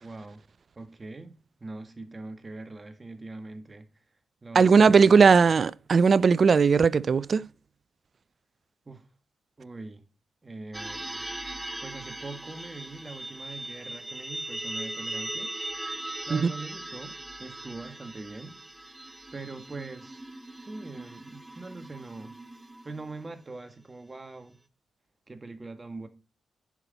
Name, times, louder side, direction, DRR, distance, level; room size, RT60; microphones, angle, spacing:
voice 1, 0.0-0.4 0.7-3.9 4.4-5.3 8.8-9.1 9.6-10.0 10.4-11.2 11.8-15.5 16.2-18.6 19.3-20.2 20.6-22.4 22.8-24.6 25.3-26.1, right 3 dB, 30° right, 1.8 m, -42 dB
voice 2, 4.5-7.5 16.3-16.5, right 5 dB, 55° right, 0.4 m, -18 dB
sound 1, 10.7-23.3, right 1 dB, 15° right, 0.8 m, -39 dB
10.0 x 5.9 x 4.1 m
supercardioid pair, 55°, 0 cm